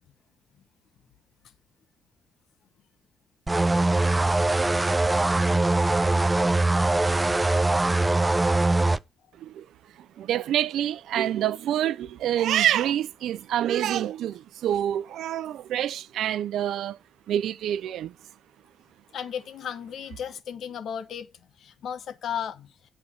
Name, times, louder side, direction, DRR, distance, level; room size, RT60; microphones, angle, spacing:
sound 1, 3.5-9.0, right 2 dB, 20° right, 0.5 m, -22 dB
voice 1, 10.2-17.0 17.3-18.1, right 11 dB, 75° right, 0.6 m, -26 dB
voice 2, 19.1-21.3 21.6-22.7, left 8 dB, 70° left, 1.0 m, -34 dB
8.7 x 4.6 x 7.2 m
supercardioid pair, 55°, 0 cm